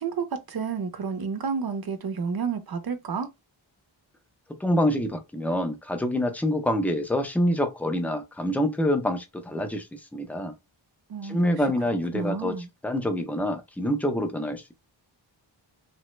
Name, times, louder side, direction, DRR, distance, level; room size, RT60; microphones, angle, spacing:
voice 1, 0.0-3.3 11.1-11.5 12.1-12.7, right 5 dB, 50° right, 0.6 m, -30 dB
voice 2, 4.6-10.5 11.2-12.5 12.8-14.6, equal, 5° left, 0.5 m, -26 dB
3.1 x 2.1 x 3.0 m
wide cardioid pair, 90°, 47 cm